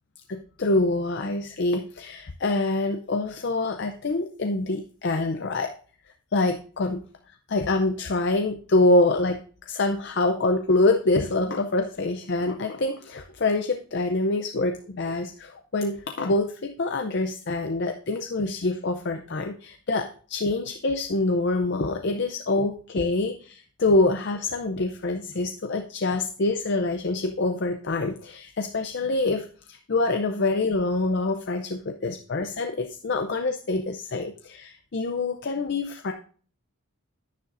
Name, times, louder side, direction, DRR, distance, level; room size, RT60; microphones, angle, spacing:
voice 1, 0.3-5.7 6.3-7.0 7.5-36.1, left 2 dB, 50° left, 5 dB, 0.6 m, -25 dB
10.0 x 9.9 x 2.6 m, 0.43 s
head